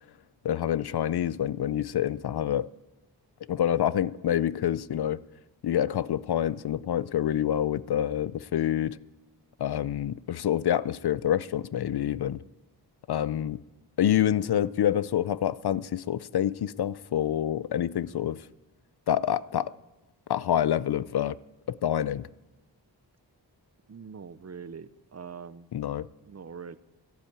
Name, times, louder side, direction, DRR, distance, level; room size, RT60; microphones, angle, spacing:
voice 1, 0.4-2.7 3.5-5.2 5.6-9.0 9.6-12.4 13.1-13.6 14.0-18.4 19.1-19.7 20.3-21.4 21.7-22.3 25.7-26.1, left 10 dB, 65° left, 0.5 m, -27 dB
voice 2, 23.9-25.7 26.2-26.8, right 6 dB, 40° right, 0.6 m, -43 dB
12.0 x 12.0 x 8.8 m
wide cardioid pair, 75°, 42 cm